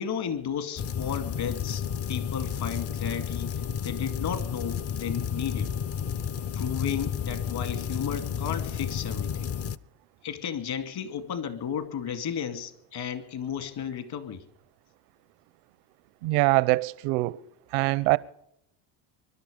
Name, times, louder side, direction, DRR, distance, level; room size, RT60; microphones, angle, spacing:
voice 1, 0.0-1.8 2.1-5.8 6.5-9.5 10.2-14.4, left 8 dB, 55° left, 2.5 m, -33 dB
sound 1, 0.8-9.8, left 7 dB, 35° left, 0.5 m, -31 dB
voice 2, 16.2-17.4 17.7-18.2, right 21 dB, 90° right, 0.8 m, -23 dB
24.5 x 11.5 x 5.1 m
cardioid pair, 110°, 45 cm